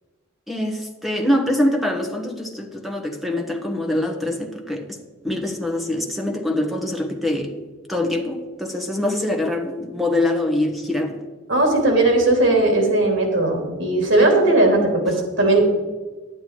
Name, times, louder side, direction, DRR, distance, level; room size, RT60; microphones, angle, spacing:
voice 1, 0.5-5.0 5.2-7.6 7.9-11.2, left 1 dB, ahead, 2 dB, 1.2 m, -24 dB
voice 2, 11.5-15.7, right 2 dB, 85° right, 2 dB, 2.9 m, -18 dB
11.0 x 8.8 x 4.6 m, 1.3 s
head